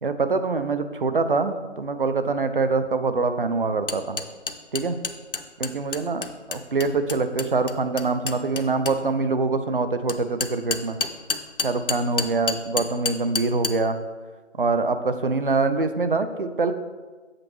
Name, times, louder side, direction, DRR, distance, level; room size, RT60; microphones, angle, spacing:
voice 1, 0.0-4.2 4.7-5.0 5.6-6.2 6.5-11.0 11.6-14.0 14.6-16.7, right 3 dB, 45° right, 10 dB, 0.5 m, -24 dB
sound 1, 3.9-9.0 10.1-13.7, left 4 dB, 50° left, 0.5 m, -28 dB
7.6 x 6.7 x 3.1 m, 1.3 s
figure-of-eight pair, 165°, 37 cm